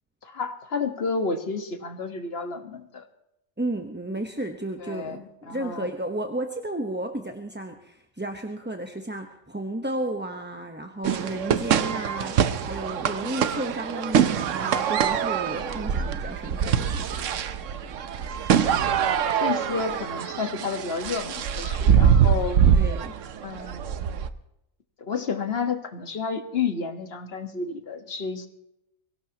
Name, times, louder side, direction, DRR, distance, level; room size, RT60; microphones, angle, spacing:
voice 1, 0.2-3.0 4.8-5.8 19.4-22.6 23.4-24.2 25.0-28.5, left 5 dB, 45° left, 7 dB, 1.5 m, -31 dB
voice 2, 3.6-17.2 22.7-23.1, right 1 dB, 10° right, 4 dB, 0.8 m, -33 dB
sound 1, 11.0-24.3, right 8 dB, 65° right, 1.1 m, -24 dB
23.0 x 17.5 x 2.9 m, 0.86 s
omnidirectional pair, 1.5 m